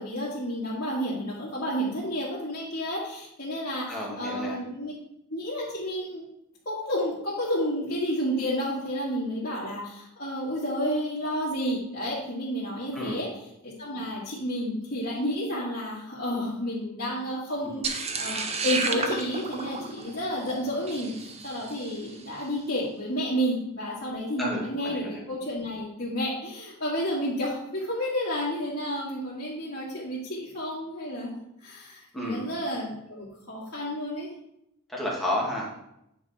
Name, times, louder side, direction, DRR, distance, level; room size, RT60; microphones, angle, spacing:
voice 1, 0.0-4.9 5.3-6.3 6.7-13.3 13.6-31.3 31.6-34.3, equal, 45° left, -10 dB, 2.1 m, -31 dB
voice 2, 3.9-4.6 12.9-13.2 24.4-25.2 32.1-32.5 34.9-35.7, left 1 dB, ahead, -4 dB, 1.9 m, -31 dB
sound 1, 17.8-22.1, right 4 dB, 30° right, 0.7 m, -32 dB
9.3 x 4.8 x 4.3 m, 0.81 s
head